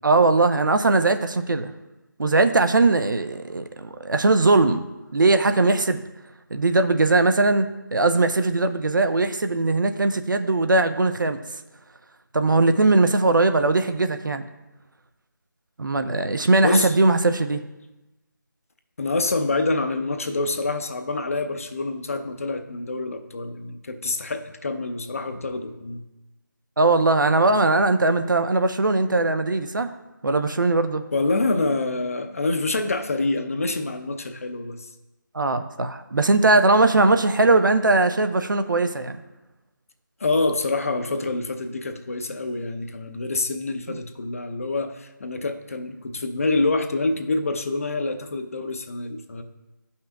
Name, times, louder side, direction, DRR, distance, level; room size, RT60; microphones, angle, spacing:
voice 1, 0.0-1.7 2.2-4.9 5.1-6.0 6.5-11.4 12.3-14.5 15.8-17.6 26.8-29.9 30.2-31.0 35.3-39.2 43.9-44.0, right 2 dB, 70° right, 9 dB, 0.6 m, -20 dB
voice 2, 16.6-17.0 19.0-26.0 31.1-34.9 40.2-49.4, left 2 dB, 45° left, 6 dB, 0.6 m, -26 dB
12.0 x 5.6 x 2.3 m, 1.0 s
figure-of-eight pair, 160°, 11 cm